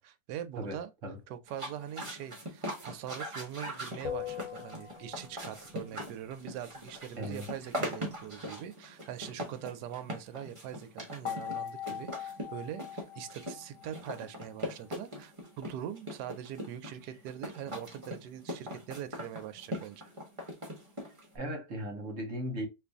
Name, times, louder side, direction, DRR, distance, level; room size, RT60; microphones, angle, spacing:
voice 1, 0.0-0.9 1.3-20.0, right 10 dB, 75° right, 1.1 m, -42 dB
voice 2, 0.6-1.2 7.2-7.5 21.3-22.7, equal, 50° right, 1.1 m, -37 dB
sound 1, 1.5-21.4, equal, 25° right, 0.7 m, -41 dB
sound 2, 4.0-5.6 11.2-14.6, left 9 dB, 75° left, 1.3 m, -41 dB
2.9 x 2.6 x 3.4 m
omnidirectional pair, 1.9 m